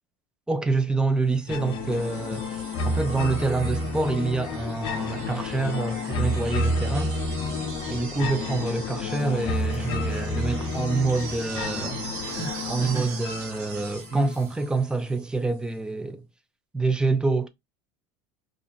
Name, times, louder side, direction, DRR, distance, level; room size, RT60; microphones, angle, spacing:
voice 1, 0.5-7.1 7.9-12.0 12.7-16.2 16.7-17.5, right 3 dB, 10° right, 0.4 m, -26 dB
sound 1, 1.4-15.4 16.8-16.9, right 5 dB, 75° right, 1.1 m, -41 dB
sound 2, 1.5-14.5, left 2 dB, 50° left, 0.7 m, -30 dB
sound 3, 9.2-10.1 10.5-10.7 11.1-11.6 12.2-13.2 14.1-14.5, right 4 dB, 25° right, 1.1 m, -35 dB
2.8 x 2.5 x 3.9 m
supercardioid pair, 135°, 11 cm